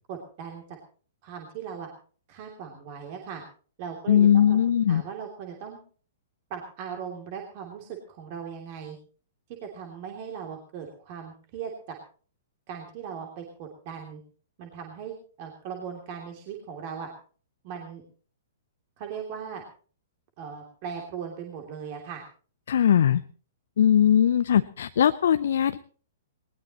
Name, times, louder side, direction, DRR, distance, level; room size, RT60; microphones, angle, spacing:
voice 1, 0.1-0.8 1.2-1.9 2.3-3.4 3.8-4.6 4.9-5.8 6.5-9.0 9.6-11.9 12.7-14.2 14.6-17.1 17.6-18.0 19.0-19.6 20.4-22.2, right 7 dB, 45° right, 1 dB, 3.0 m, -38 dB
voice 2, 4.1-5.0 22.7-23.2 23.8-25.8, left 9 dB, 60° left, 11 dB, 0.6 m, -20 dB
20.0 x 19.5 x 3.1 m, 0.42 s
figure-of-eight pair, 110°, 0 cm